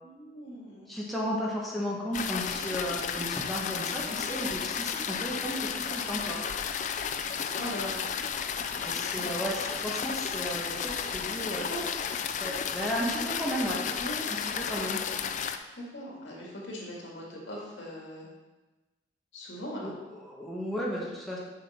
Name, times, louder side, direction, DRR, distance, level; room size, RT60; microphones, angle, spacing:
voice 1, 0.0-1.0 3.7-4.3 7.5-8.0 9.1-9.3 11.5-11.8 14.0-14.2 15.7-18.3 19.3-19.9, equal, 80° left, -3 dB, 2.1 m, -40 dB
voice 2, 0.9-6.4 8.8-11.7 12.4-13.8 14.3-15.0 19.8-21.4, equal, ahead, -5 dB, 1.2 m, -34 dB
sound 1, 2.1-15.6, left 7 dB, 40° left, 0.4 m, -33 dB
6.8 x 6.3 x 4.3 m, 1.2 s
head